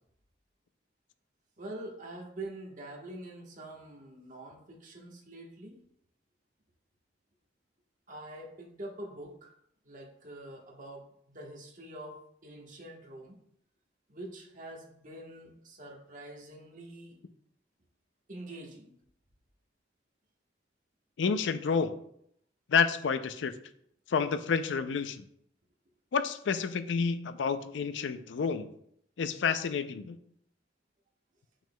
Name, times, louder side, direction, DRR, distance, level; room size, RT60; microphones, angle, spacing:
voice 1, 1.6-5.8 8.1-9.5 9.8-13.4 14.1-17.2 18.3-18.9, right 1 dB, 45° right, 0 dB, 1.2 m, -45 dB
voice 2, 21.2-21.9 22.7-23.5 24.1-25.2 26.1-28.7 29.2-30.2, left 5 dB, 75° left, 11 dB, 0.4 m, -29 dB
6.8 x 6.1 x 2.2 m, 0.71 s
head